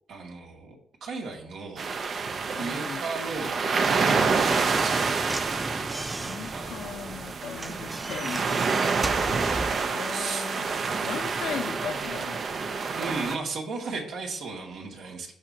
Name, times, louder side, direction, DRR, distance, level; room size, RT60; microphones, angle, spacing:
voice 1, 0.1-0.8 1.0-1.9 2.6-5.6 6.5-7.1 7.9-8.1 9.0-10.5 12.9-15.3, right 3 dB, 75° right, -1 dB, 2.4 m, -36 dB
sound 1, 1.8-13.4, right 4 dB, 50° right, 0.8 m, -28 dB
voice 2, 2.6-3.0 6.2-8.5 9.9-10.7 11.0-12.8, left 7 dB, 75° left, 5 dB, 0.9 m, -37 dB
Slam / Knock, 4.1-9.9, right 2 dB, 15° right, 0.4 m, -36 dB
14.5 x 4.9 x 2.9 m, 0.67 s
cardioid pair, 90°, 0 cm